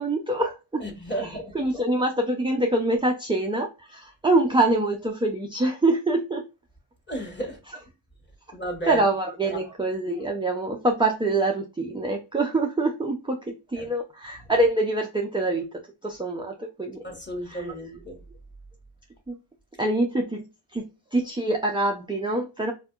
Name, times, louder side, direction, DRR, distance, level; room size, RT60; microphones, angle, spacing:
voice 1, 0.0-0.8 1.5-6.4 8.9-17.0 17.5-17.7 19.3-19.4 19.8-20.5 20.7-22.7, right 2 dB, 10° right, 0.4 m, -25 dB
voice 2, 0.8-1.6 7.1-7.6 8.5-9.0 9.6-9.7 13.7-13.9 17.0-18.2, right 1 dB, 20° left, 1.4 m, -32 dB
3.5 x 2.6 x 2.3 m
cardioid pair, 65°, 49 cm